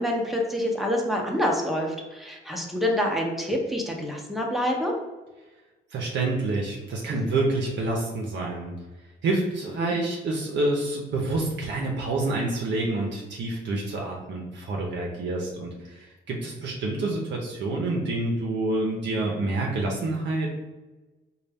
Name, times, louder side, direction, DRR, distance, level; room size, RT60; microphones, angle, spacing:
voice 1, 0.0-4.9 9.8-10.0, left 1 dB, ahead, -1 dB, 0.8 m, -27 dB
voice 2, 5.9-8.7 9.2-20.5, right 2 dB, 65° right, -2 dB, 0.7 m, -28 dB
4.0 x 2.3 x 3.4 m, 1.2 s
cardioid pair, 90°, 20 cm